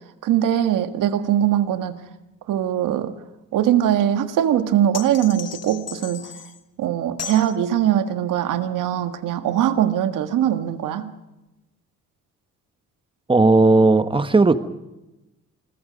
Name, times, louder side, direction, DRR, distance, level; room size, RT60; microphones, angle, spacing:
voice 1, 0.2-2.0 2.5-3.1 3.5-6.3 6.8-11.1, right 11 dB, 75° right, 9 dB, 1.7 m, -21 dB
sound 1, 4.9-6.6 7.2-7.5, left 9 dB, 50° left, 1.4 m, -35 dB
voice 2, 13.3-14.6, right 3 dB, 15° right, 10 dB, 1.3 m, -15 dB
28.5 x 21.0 x 5.2 m, 0.97 s
cardioid pair, 95°, 32 cm